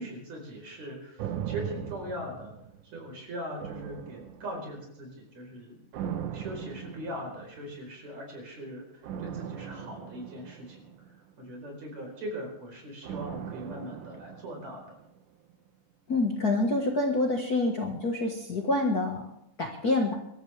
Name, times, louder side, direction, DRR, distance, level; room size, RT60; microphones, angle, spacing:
voice 1, 0.0-2.5 2.9-5.8 6.3-10.9 11.4-15.0, equal, 65° right, 1 dB, 5.8 m, -40 dB
sound 1, 1.2-3.1 3.6-4.9 5.9-7.6 9.0-11.4 13.0-15.2 15.5-15.6, right 9 dB, 85° right, 2.6 m, -39 dB
voice 2, 16.1-19.3 19.6-20.2, left 2 dB, 40° left, 1 dB, 1.7 m, -27 dB
25.0 x 13.5 x 3.5 m, 0.78 s
omnidirectional pair, 3.4 m